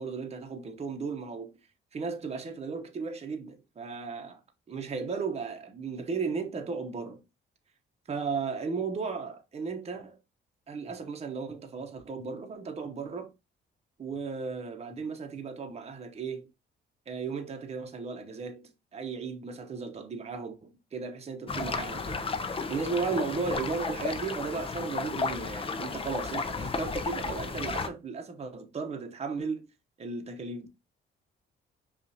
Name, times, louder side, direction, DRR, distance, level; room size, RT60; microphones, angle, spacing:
voice 1, 0.0-1.5 1.9-4.4 4.7-7.2 8.1-10.2 10.7-13.3 14.0-16.5 17.1-29.7 30.0-30.7, right 5 dB, 30° right, 0.8 m, -35 dB
sound 1, 21.5-27.9, left 4 dB, 30° left, 0.5 m, -33 dB
5.3 x 2.5 x 2.7 m
cardioid pair, 90°, 20 cm